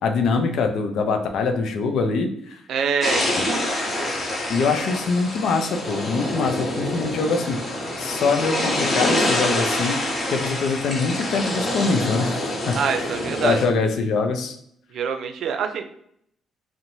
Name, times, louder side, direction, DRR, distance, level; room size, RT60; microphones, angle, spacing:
voice 1, 0.0-2.6 3.4-3.5 4.5-7.6 8.0-10.0 10.3-12.8 13.4-14.6, left 4 dB, 75° left, 6 dB, 0.4 m, -23 dB
voice 2, 2.7-3.7 12.7-13.6 14.9-15.8, right 6 dB, 70° right, 7 dB, 0.3 m, -25 dB
sound 1, 3.0-13.6, left 1 dB, 45° left, 0.8 m, -26 dB
2.6 x 2.1 x 2.9 m, 0.69 s
cardioid pair, 90°, 0 cm